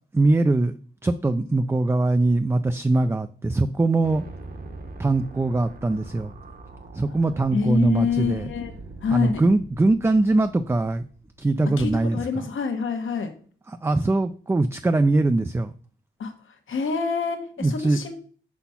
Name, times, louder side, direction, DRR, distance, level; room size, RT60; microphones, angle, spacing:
voice 1, 0.1-0.7 1.0-4.2 5.0-6.3 6.9-8.5 9.1-11.0 11.4-12.5 13.7-15.7 17.6-18.0, right 2 dB, 10° right, 9 dB, 0.3 m, -22 dB
sound 1, 4.0-12.1, right 2 dB, 45° right, 1.0 m, -43 dB
voice 2, 7.5-8.7 9.0-9.4 11.8-13.3 16.2-16.3 16.7-18.1, left 5 dB, 75° left, 5 dB, 1.1 m, -26 dB
5.6 x 4.2 x 5.6 m, 0.44 s
wide cardioid pair, 95°, 21 cm